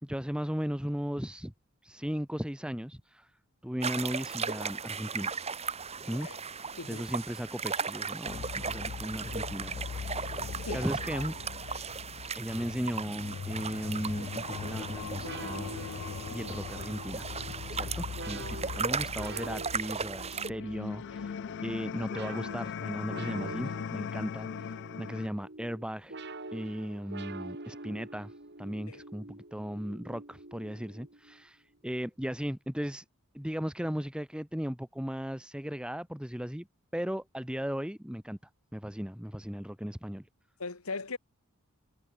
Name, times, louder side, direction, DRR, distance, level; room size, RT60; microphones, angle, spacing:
voice 1, 0.0-1.5 1.8-3.3 3.6-5.3 6.0-6.3 6.9-11.3 12.4-15.7 16.3-17.3 17.7-26.2 26.5-28.3 28.6-33.0 33.3-36.7 36.9-38.4 38.7-40.2, equal, 5° right, 1.4 m, -36 dB
sound 1, 3.8-20.5, right 5 dB, 30° right, 2.1 m, -37 dB
voice 2, 6.7-7.1 10.7-10.9 11.1-11.3 11.7-11.9 28.9-29.0 40.6-41.2, left 3 dB, 80° left, 2.1 m, -39 dB
sound 2, 8.3-25.3, left 6 dB, 55° left, 0.3 m, -40 dB
sound 3, 15.2-31.4, right 2 dB, 50° right, 3.6 m, -46 dB
head